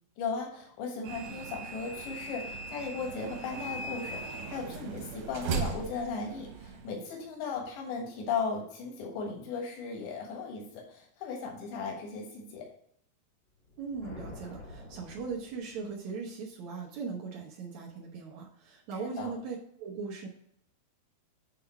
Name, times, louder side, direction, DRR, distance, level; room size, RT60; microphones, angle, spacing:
voice 1, 0.2-12.7 19.0-19.3, left 5 dB, 85° left, 0 dB, 3.7 m, -37 dB
sound 1, 1.0-6.9, right 4 dB, 70° right, 2.8 m, -38 dB
sound 2, 13.6-16.1, left 1 dB, 45° left, 0.7 m, -48 dB
voice 2, 13.8-20.3, right 5 dB, 85° right, -3 dB, 1.6 m, -39 dB
8.3 x 4.0 x 4.3 m, 0.69 s
omnidirectional pair, 4.9 m